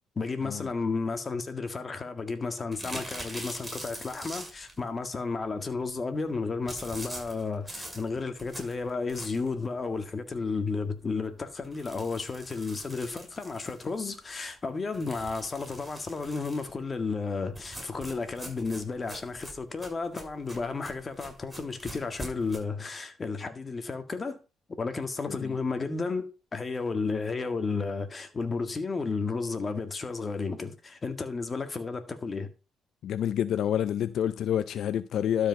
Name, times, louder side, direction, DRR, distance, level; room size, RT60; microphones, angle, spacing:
voice 1, 0.2-24.4 24.8-32.5, left 4 dB, 35° left, 1.8 m, -33 dB
sound 1, 2.7-4.8 6.7-9.6 10.0-10.1 10.5-10.6 10.9-11.0 11.6-14.1 14.9-16.7 17.5-22.6, right 1 dB, 10° right, 6.5 m, -43 dB
voice 2, 33.0-35.5, left 10 dB, 70° left, 0.5 m, -28 dB
12.0 x 5.1 x 5.3 m
cardioid pair, 90°, 0 cm